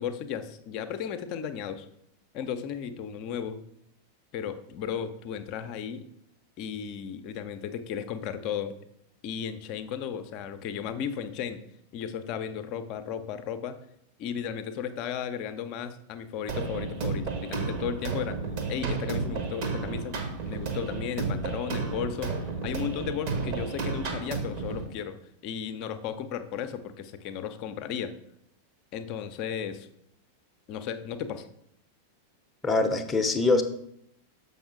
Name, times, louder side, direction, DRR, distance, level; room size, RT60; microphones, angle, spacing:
voice 1, 0.0-1.9 2.3-3.6 4.3-6.1 6.6-8.7 9.2-11.6 11.9-13.8 14.2-18.4 18.7-20.2 20.4-25.2 25.4-28.2 28.9-29.9 30.7-31.5, left 8 dB, 40° left, 10 dB, 0.6 m, -35 dB
sound 1, 16.5-24.8, right 4 dB, 45° right, 1.2 m, -32 dB
voice 2, 32.6-33.6, left 3 dB, 15° left, 5 dB, 0.8 m, -23 dB
6.9 x 5.5 x 3.7 m, 0.74 s
figure-of-eight pair, 90°, 0 cm